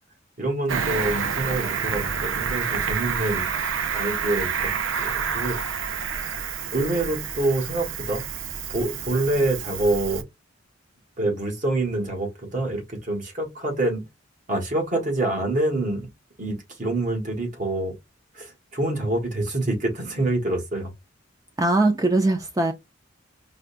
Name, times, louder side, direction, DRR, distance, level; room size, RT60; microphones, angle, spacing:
voice 1, 0.4-3.5 3.9-5.6 6.7-8.2 8.7-10.2 11.2-14.0 14.5-16.1 16.4-18.0 18.3-20.9, right 2 dB, 40° right, 1.4 m, -26 dB
Cricket, 0.7-10.2, right 6 dB, 85° right, 0.6 m, -28 dB
voice 2, 21.6-22.7, right 2 dB, 20° right, 0.5 m, -21 dB
4.9 x 2.3 x 2.4 m
head